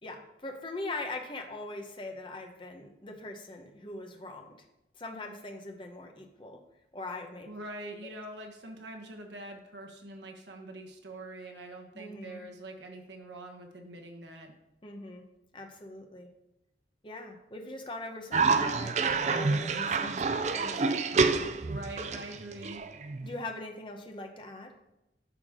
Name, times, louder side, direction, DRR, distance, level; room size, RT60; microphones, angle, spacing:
voice 1, 0.0-4.6 5.0-6.6 6.9-7.5 8.0-8.1 11.9-12.4 14.8-15.2 15.5-16.3 17.0-21.0 23.2-24.7, left 2 dB, 30° left, 3 dB, 0.9 m, -41 dB
voice 2, 7.4-14.5 21.7-22.8, right 1 dB, 80° right, 2 dB, 1.2 m, -44 dB
Cough, 18.3-23.4, right 4 dB, 40° right, 0.4 m, -28 dB
10.0 x 3.6 x 6.3 m, 0.89 s
head